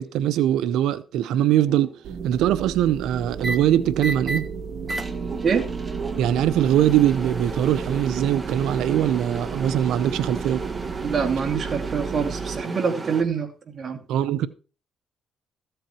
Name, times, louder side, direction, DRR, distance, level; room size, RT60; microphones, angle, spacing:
voice 1, 0.0-1.9 2.2-4.5 6.2-10.6 14.1-14.5, right 11 dB, 90° right, 0.7 m, -22 dB
sound 1, 1.7-2.0 3.4-3.6 4.0-4.4 4.9-13.2, right 3 dB, 25° right, 1.6 m, -33 dB
sound 2, 2.0-12.6, right 6 dB, 65° right, 1.6 m, -34 dB
sound 3, 3.1-8.1, right 1 dB, ahead, 3.6 m, -42 dB
voice 2, 11.0-14.0, right 6 dB, 45° right, 2.3 m, -25 dB
15.0 x 7.9 x 4.4 m
cardioid pair, 90°, 0 cm